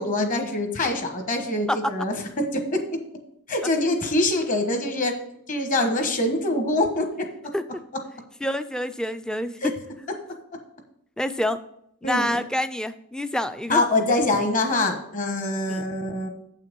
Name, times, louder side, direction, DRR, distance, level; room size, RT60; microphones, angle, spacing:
voice 1, 0.0-2.8 3.5-5.1 5.5-7.3 9.6-9.7 12.0-12.4 13.7-16.3, left 2 dB, 35° left, 5 dB, 1.2 m, -24 dB
voice 2, 8.4-9.7 11.2-11.6 12.0-13.8 15.7-15.8, left 1 dB, 5° left, 11 dB, 0.3 m, -27 dB
7.8 x 5.7 x 5.2 m, 0.73 s
head